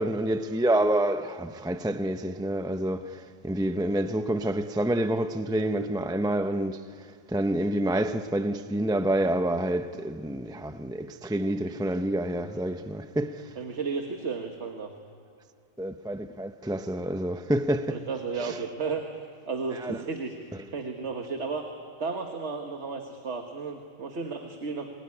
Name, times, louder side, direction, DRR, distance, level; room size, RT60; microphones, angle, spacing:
voice 1, 0.0-6.9 7.3-13.5 15.8-18.0 18.4-18.5 19.8-20.0, right 1 dB, 5° right, 0.3 m, -28 dB
voice 2, 13.6-14.9 17.9-20.3 20.7-21.7 22.0-24.9, right 4 dB, 55° right, 1.7 m, -33 dB
28.5 x 21.0 x 9.7 m
omnidirectional pair, 1.4 m